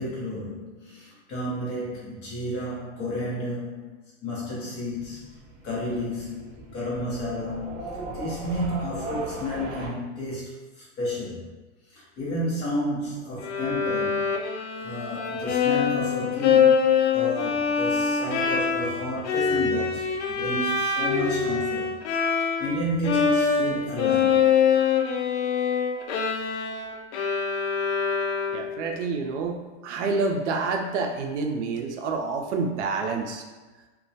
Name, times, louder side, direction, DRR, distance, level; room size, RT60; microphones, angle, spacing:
voice 1, 0.0-3.9 4.2-5.2 5.6-11.5 11.9-14.2 14.8-16.8 17.1-21.9 22.4-24.4, left 1 dB, 30° left, -6 dB, 0.7 m, -31 dB
sound 1, 4.8-9.9, right 2 dB, 40° right, 0.7 m, -38 dB
Bowed string instrument, 13.4-22.8 23.0-28.9, left 6 dB, 75° left, 0.5 m, -24 dB
voice 2, 28.5-33.4, right 4 dB, 75° right, 3 dB, 0.5 m, -28 dB
2.2 x 2.1 x 2.6 m, 1.2 s
supercardioid pair, 150°, 35 cm